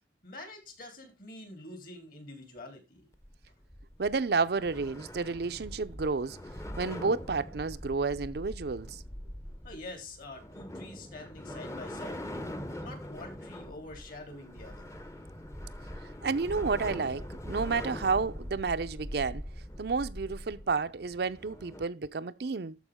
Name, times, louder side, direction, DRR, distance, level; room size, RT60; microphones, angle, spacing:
voice 1, 0.2-3.1 9.6-12.3 12.8-14.9, left 2 dB, 50° left, 3.6 m, -46 dB
sound 1, 3.1-21.8, equal, 15° left, 0.8 m, -42 dB
voice 2, 4.0-6.4 6.8-9.0 16.2-19.4 19.8-22.8, right 4 dB, 60° right, 0.5 m, -31 dB
13.0 x 4.9 x 3.6 m
head